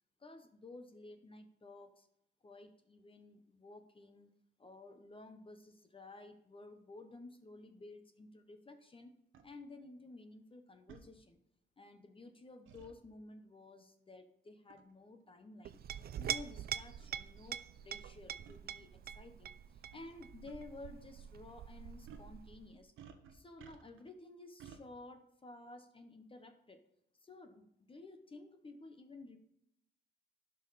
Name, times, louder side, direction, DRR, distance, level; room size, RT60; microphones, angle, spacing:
voice 1, 0.2-2.1 2.4-4.3 4.6-9.1 9.4-11.4 11.8-15.8 16.2-22.9 23.3-26.8 27.2-29.4, left 2 dB, 25° left, 7 dB, 0.9 m, -54 dB
sound 1, 9.3-9.5 10.9-11.1 12.7-12.9 14.7-14.9 15.7-15.8 16.6-16.7 17.0-17.1 18.5-18.6 19.9-20.1 20.5-20.6 22.1-22.3 23.0-24.1 24.6-24.8, right 8 dB, 85° right, 1.0 m, -55 dB
Chink clink, 15.6-22.8, right 9 dB, 50° right, 0.5 m, -44 dB
12.0 x 5.4 x 4.1 m, 0.77 s
cardioid pair, 90°, 20 cm